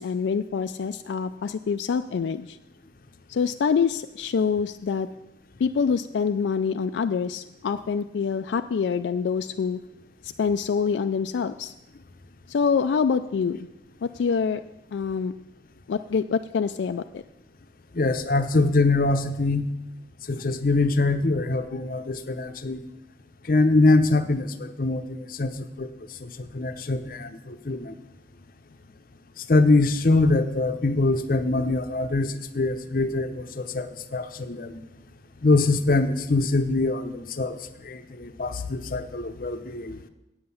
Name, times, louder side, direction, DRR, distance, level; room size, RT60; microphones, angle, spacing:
voice 1, 0.0-2.6 3.3-5.1 5.6-9.8 10.2-11.7 12.5-13.7 14.0-14.6 14.9-15.3 15.9-17.2, left 6 dB, 80° left, 9 dB, 0.3 m, -26 dB
voice 2, 17.9-19.7 20.3-22.8 23.5-25.9 26.2-27.9 29.5-34.8 35.4-37.6 37.8-40.0, left 2 dB, 50° left, 10 dB, 0.7 m, -23 dB
8.8 x 7.6 x 7.0 m, 0.92 s
head